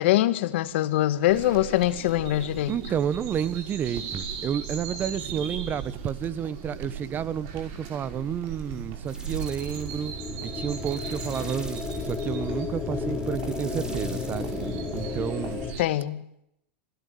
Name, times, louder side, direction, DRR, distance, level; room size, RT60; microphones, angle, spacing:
voice 1, 0.0-2.7 15.8-16.2, left 14 dB, 65° left, 1.7 m, -23 dB
sound 1, 1.3-15.8, right 6 dB, 55° right, 5.1 m, -37 dB
voice 2, 2.7-10.1 10.4-14.5 14.9-15.7, right 8 dB, 30° right, 1.4 m, -31 dB
sound 2, 9.0-15.4, right 1 dB, 10° right, 3.9 m, -44 dB
sound 3, 9.6-15.7, left 5 dB, 20° left, 3.8 m, -33 dB
27.0 x 17.0 x 8.6 m
hypercardioid pair, 120°, 7 cm